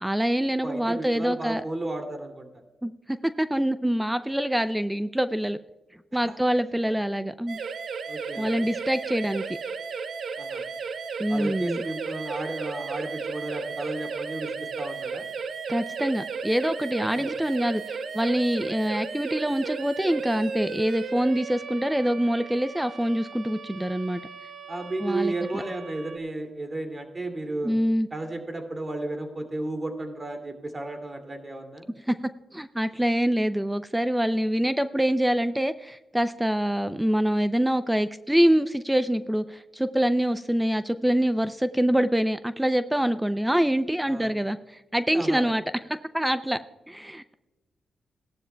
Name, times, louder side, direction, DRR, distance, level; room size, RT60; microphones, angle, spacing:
voice 1, 0.0-1.6 2.8-2.9 3.4-5.6 6.1-7.6 8.4-9.4 11.2-11.8 15.7-24.2 25.0-25.6 27.6-28.1 32.1-32.2 32.5-44.6 44.9-45.6 46.1-46.6 46.9-47.3, equal, 5° right, 12 dB, 0.5 m, -25 dB
voice 2, 0.6-2.5 6.2-6.4 6.8-6.9 8.1-8.7 10.4-10.6 11.3-15.3 17.1-17.4 24.7-27.7 28.1-31.9 44.1-44.3 45.1-45.4, right 2 dB, 30° right, 6 dB, 2.5 m, -33 dB
sound 1, 7.5-26.2, right 5 dB, 70° right, 0.8 m, -35 dB
17.5 x 12.0 x 2.3 m, 1.1 s
cardioid pair, 60°, 0 cm